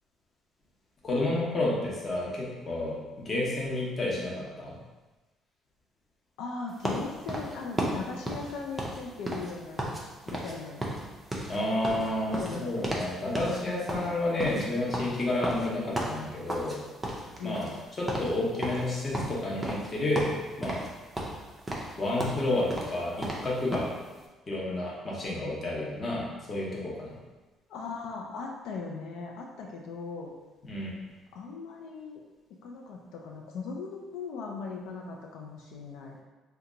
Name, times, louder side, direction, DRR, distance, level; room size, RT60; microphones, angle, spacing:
voice 1, 1.0-3.0 3.2-4.7 11.5-16.8 17.4-17.7 18.0-20.3 20.6-20.8 22.0-23.9 24.5-27.1 30.7-30.9, left 2 dB, 25° left, -4 dB, 0.7 m, -30 dB
voice 2, 6.4-9.9 10.3-10.8 12.4-12.9 17.4-17.7 27.7-30.3 31.3-32.2 32.6-36.2, left 4 dB, 80° left, 0 dB, 0.4 m, -39 dB
sound 1, 6.8-10.0 10.3-10.6 10.8-13.1 13.4-13.6 13.9-16.8 17.0-17.8 18.1-18.3 18.6-19.9 20.2-20.9 21.2-23.9, right 1 dB, 15° right, 0.4 m, -34 dB
2.8 x 2.2 x 3.7 m, 1.2 s
cardioid pair, 170°, 0 cm